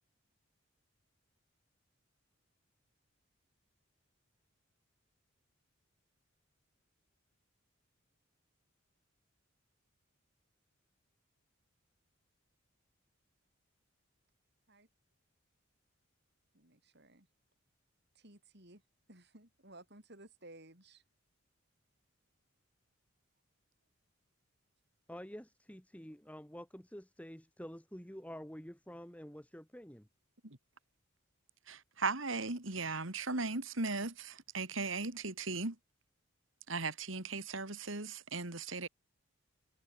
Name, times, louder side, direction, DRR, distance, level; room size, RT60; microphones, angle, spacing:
voice 1, 16.5-17.3 18.2-18.8 19.1-21.0, right 2 dB, 55° right, 7.0 m, -57 dB
voice 2, 25.1-30.1, equal, 5° left, 3.0 m, -48 dB
voice 3, 31.7-35.8 36.7-38.9, right 3 dB, 70° right, 2.8 m, -37 dB
head